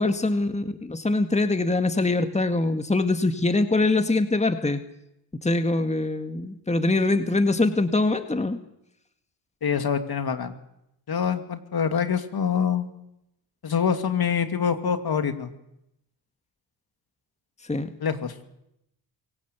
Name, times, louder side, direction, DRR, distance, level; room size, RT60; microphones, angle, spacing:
voice 1, 0.0-4.8 5.4-8.6 17.7-17.9, left 2 dB, 15° left, 8 dB, 1.9 m, -23 dB
voice 2, 9.6-10.5 11.1-12.9 13.6-15.5 18.0-18.3, left 7 dB, 55° left, 8 dB, 2.6 m, -25 dB
25.0 x 17.5 x 8.3 m, 0.83 s
supercardioid pair, 55°, 44 cm